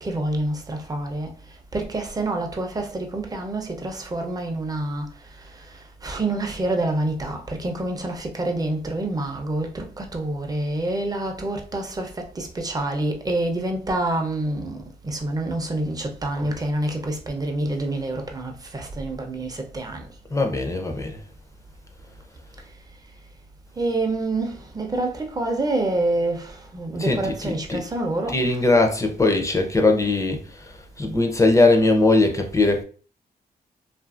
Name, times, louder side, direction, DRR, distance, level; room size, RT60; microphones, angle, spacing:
voice 1, 0.0-1.3 1.7-5.1 6.0-12.1 12.4-20.0 23.8-28.5, right 2 dB, 20° right, 0.6 m, -27 dB
voice 2, 20.3-21.2 27.0-27.8 28.3-32.8, left 2 dB, 20° left, 0.6 m, -20 dB
2.6 x 2.5 x 2.4 m
cardioid pair, 75°, 17 cm